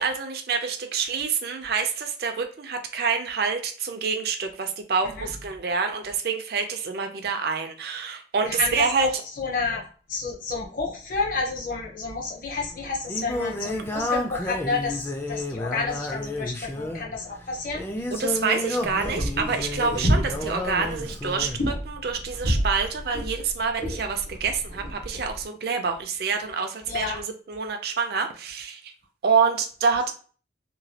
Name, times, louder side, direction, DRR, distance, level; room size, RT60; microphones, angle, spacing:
voice 1, 0.0-9.1 18.1-28.9 29.2-30.1, right 5 dB, 55° right, 5 dB, 0.4 m, -27 dB
voice 2, 8.6-9.1 9.4-9.8 10.1-17.8 26.9-27.2, left 4 dB, 50° left, -1 dB, 0.7 m, -30 dB
Singing, 12.6-21.6, left 1 dB, 10° left, 0.3 m, -31 dB
sound 1, 18.8-25.4, equal, 75° left, 1.3 m, -30 dB
3.0 x 2.3 x 2.7 m, 0.41 s
head